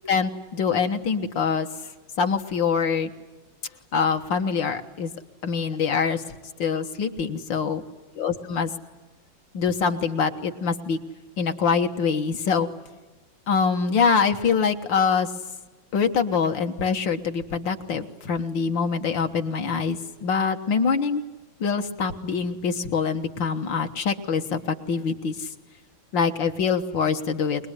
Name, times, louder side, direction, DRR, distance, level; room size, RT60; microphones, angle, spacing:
voice 1, 0.1-1.7 2.2-3.1 3.9-5.1 5.4-6.2 6.6-7.8 8.2-8.7 9.5-11.0 11.4-12.7 13.5-15.3 15.9-21.2 21.6-25.5 26.1-27.7, left 5 dB, 65° left, 5 dB, 2.0 m, -24 dB
23.0 x 21.5 x 9.9 m, 1.2 s
omnidirectional pair, 2.3 m